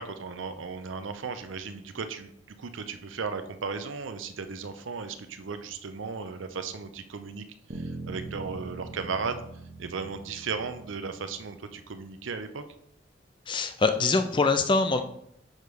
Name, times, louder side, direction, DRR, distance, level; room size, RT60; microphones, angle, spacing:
voice 1, 0.0-9.4 9.8-12.6, right 5 dB, 85° right, 9 dB, 0.5 m, -36 dB
sound 1, 7.7-12.1, right 3 dB, 55° right, 0.8 m, -42 dB
voice 2, 13.5-15.0, left 3 dB, 25° left, 8 dB, 0.3 m, -24 dB
6.4 x 3.2 x 5.2 m, 0.72 s
head